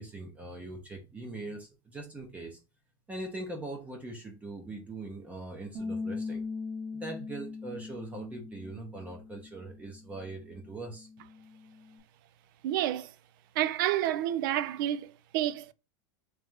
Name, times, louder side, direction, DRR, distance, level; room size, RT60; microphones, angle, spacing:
voice 1, 0.0-2.6 3.1-6.4 6.9-11.1, right 2 dB, 10° right, 0.7 m, -41 dB
Bass guitar, 5.7-12.0, left 4 dB, 40° right, 1.2 m, -41 dB
voice 2, 12.6-13.1 13.6-15.7, right 12 dB, 60° right, 0.4 m, -29 dB
3.2 x 3.2 x 3.6 m
supercardioid pair, 155°, 12 cm